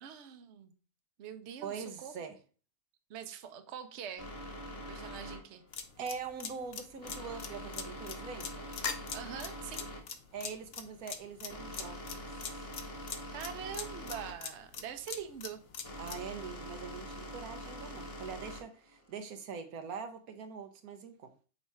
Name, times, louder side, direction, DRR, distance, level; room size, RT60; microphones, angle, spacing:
voice 1, 0.0-0.7 1.2-2.1 3.1-4.3 4.9-5.6 9.1-9.9 13.3-15.6, right 8 dB, 55° right, 1.0 m, -44 dB
voice 2, 1.6-2.4 6.0-8.7 10.3-12.3 16.0-21.3, right 6 dB, 80° right, 1.3 m, -43 dB
sound 1, 4.2-19.2, equal, 25° left, 1.3 m, -45 dB
sound 2, 5.7-16.2, left 6 dB, 55° left, 0.8 m, -41 dB
5.5 x 4.2 x 4.6 m
omnidirectional pair, 1.5 m